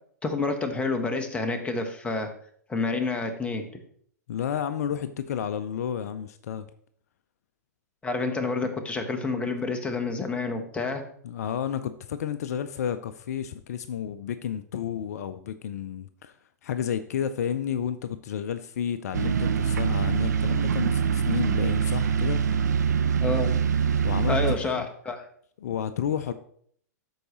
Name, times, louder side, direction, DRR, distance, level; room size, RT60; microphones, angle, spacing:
voice 1, 0.2-2.3 2.7-3.7 8.0-11.1 23.2-23.6 24.3-25.3, left 3 dB, 10° left, 5 dB, 1.2 m, -28 dB
voice 2, 4.3-6.7 11.2-16.4 16.6-22.7 24.0-24.9 25.6-26.3, left 9 dB, 60° left, 12 dB, 0.5 m, -31 dB
sound 1, 19.1-24.6, right 7 dB, 75° right, 0.6 m, -24 dB
13.0 x 4.7 x 3.1 m, 0.62 s
figure-of-eight pair, 105°, 9 cm